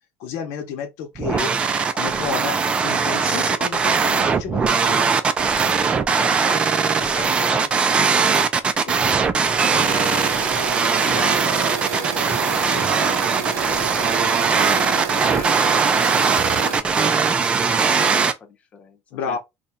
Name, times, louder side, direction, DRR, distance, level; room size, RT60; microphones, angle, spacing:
voice 1, 0.2-1.5 1.9-5.1 8.8-9.0 12.7-12.9 19.1-19.4, left 7 dB, 80° left, 0.8 m, -31 dB
sound 1, 1.2-18.3, right 5 dB, 20° right, 0.4 m, -20 dB
voice 2, 6.2-8.2 8.6-8.7 9.8-13.2 13.5-14.1 14.4-19.0 19.3-19.4, left 5 dB, 30° left, 0.8 m, -39 dB
sound 2, 9.8-16.8, right 6 dB, 85° right, 0.8 m, -28 dB
2.7 x 2.3 x 4.1 m
cardioid pair, 160°, 5 cm